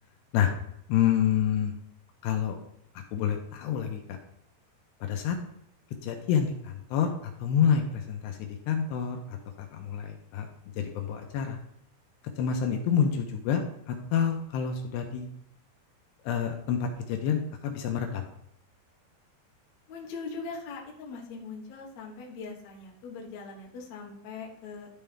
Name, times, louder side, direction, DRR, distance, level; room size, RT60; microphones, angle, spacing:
voice 1, 0.9-1.7 2.2-2.6 2.9-4.2 5.0-5.4 6.0-9.4 9.7-10.5 10.8-11.6 12.4-13.6 13.9-15.3 16.2-18.3, left 8 dB, 80° left, 3 dB, 2.8 m, -28 dB
voice 2, 19.9-24.9, left 4 dB, 60° left, -2 dB, 2.0 m, -41 dB
13.0 x 4.4 x 3.6 m, 0.73 s
omnidirectional pair, 5.1 m